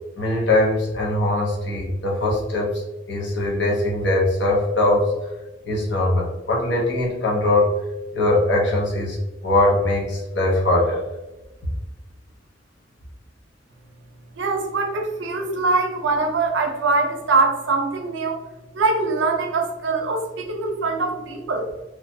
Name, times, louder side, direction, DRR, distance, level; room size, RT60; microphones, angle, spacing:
voice 1, 0.2-2.7 3.1-5.1 5.6-7.8 8.1-9.2 9.4-11.0, left 1 dB, 65° left, -2 dB, 0.8 m, -21 dB
voice 2, 14.4-18.4 18.7-21.7, right 3 dB, 75° right, 3 dB, 0.5 m, -23 dB
3.0 x 2.2 x 2.6 m, 1.0 s
head